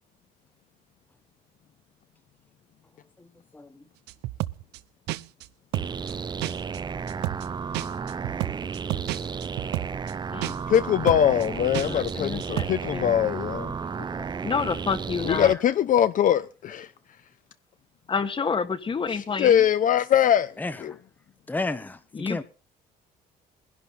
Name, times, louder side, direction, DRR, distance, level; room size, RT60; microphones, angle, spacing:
sound 1, 4.1-4.8 5.1-5.5 5.7-6.1 6.4-6.8 7.1-7.5 7.7-10.1 10.4-10.8 11.1-11.5 11.7-12.1 12.4-12.7, right 17 dB, 85° right, 0.7 m, -31 dB
sound 2, 5.7-15.5, right 6 dB, 25° right, 0.6 m, -33 dB
voice 1, 10.7-13.7 15.2-16.9 19.1-20.5 20.8-20.9, left 10 dB, 50° left, 0.8 m, -22 dB
voice 2, 11.6-12.7 12.9-13.3 14.4-15.5 18.1-19.6 22.1-22.4, left 5 dB, 30° left, 1.7 m, -29 dB
voice 3, 13.8-14.4 20.6-21.0 21.5-22.4, left 2 dB, 10° left, 1.0 m, -33 dB
20.5 x 11.0 x 4.2 m
cardioid pair, 110°, 17 cm